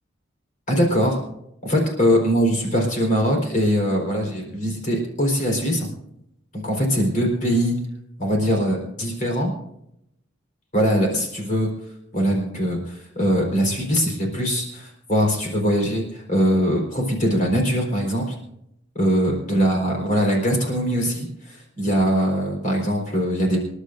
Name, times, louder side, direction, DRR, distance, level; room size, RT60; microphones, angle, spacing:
voice 1, 0.7-1.2 1.6-5.9 6.5-7.8 8.2-9.5 10.7-11.7 12.1-18.3 18.9-23.6, equal, 40° left, 0 dB, 4.2 m, -22 dB
27.0 x 11.5 x 2.6 m, 0.78 s
head